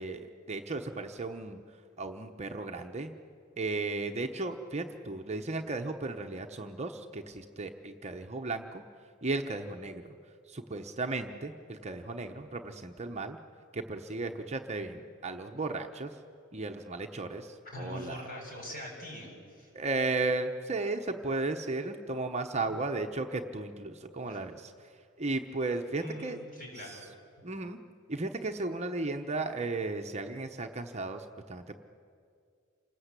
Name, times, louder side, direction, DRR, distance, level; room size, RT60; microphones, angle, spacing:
voice 1, 0.0-1.6 2.0-3.1 3.6-8.8 9.2-10.1 10.5-13.4 13.7-16.1 16.5-18.2 19.7-24.7 25.2-26.4 26.9-27.0 27.4-27.8 28.1-31.8, right 3 dB, 30° right, 5 dB, 1.0 m, -35 dB
voice 2, 17.6-19.7 22.7-22.8 24.2-24.4 26.0-27.0, left 1 dB, 45° left, 0 dB, 7.6 m, -43 dB
28.0 x 19.5 x 8.3 m, 2.3 s
head